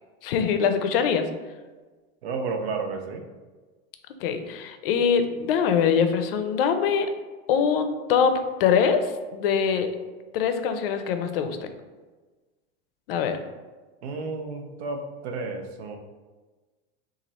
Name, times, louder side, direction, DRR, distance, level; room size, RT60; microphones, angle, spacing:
voice 1, 0.2-1.3 4.2-7.1 7.5-9.0 9.3-9.9 10.3-11.7 13.1-13.4, left 7 dB, 65° left, 8 dB, 0.5 m, -23 dB
voice 2, 2.2-3.2 14.0-16.0, right 4 dB, 85° right, 4 dB, 0.7 m, -32 dB
3.0 x 2.5 x 4.0 m, 1.3 s
supercardioid pair, 160°, 31 cm